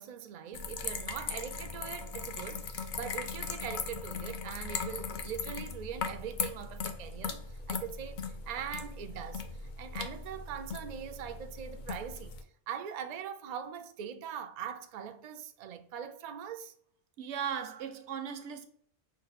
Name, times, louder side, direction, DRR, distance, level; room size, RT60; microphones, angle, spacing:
voice 1, 0.0-12.4 12.7-16.7, right 8 dB, 60° right, 0.4 m, -42 dB
sound 1, 0.5-12.4, left 5 dB, 55° left, 0.6 m, -39 dB
voice 2, 17.2-18.6, right 8 dB, 85° right, 0.9 m, -37 dB
5.4 x 2.2 x 4.1 m
omnidirectional pair, 1.1 m